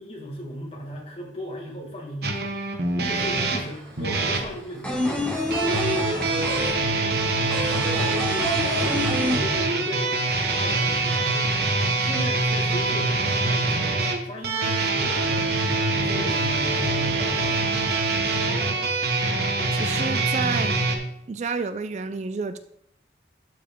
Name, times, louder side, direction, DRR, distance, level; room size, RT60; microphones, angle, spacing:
voice 1, 0.0-8.2 8.7-9.0 9.3-17.7, equal, 30° left, -1 dB, 1.9 m, -36 dB
sound 1, 2.2-4.5 5.5-20.9, right 3 dB, 60° right, 1.2 m, -24 dB
sound 2, 3.1-3.2 3.4-10.0 10.3-10.4 10.7-11.5, left 1 dB, 5° left, 1.4 m, -28 dB
voice 2, 19.7-20.7 21.3-22.6, right 4 dB, 40° right, 10 dB, 0.3 m, -30 dB
12.0 x 4.7 x 3.7 m, 0.74 s
head